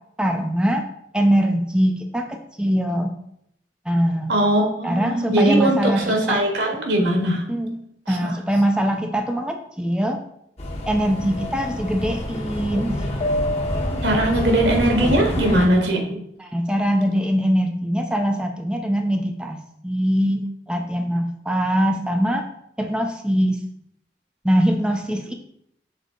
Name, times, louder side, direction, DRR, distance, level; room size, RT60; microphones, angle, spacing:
voice 1, 0.2-0.8 1.1-3.1 3.9-4.3 4.8-6.4 7.5-7.8 8.1-10.2 10.9-13.1 16.4-19.6 19.8-22.4 22.8-23.6 24.4-25.3, equal, 5° right, 4 dB, 0.5 m, -22 dB
voice 2, 4.3-7.4 8.1-8.3 14.0-16.2, right 1 dB, 80° right, 1 dB, 1.6 m, -20 dB
sound 1, 10.6-15.7, left 1 dB, 35° left, 1.1 m, -26 dB
6.5 x 4.0 x 3.8 m, 0.74 s
head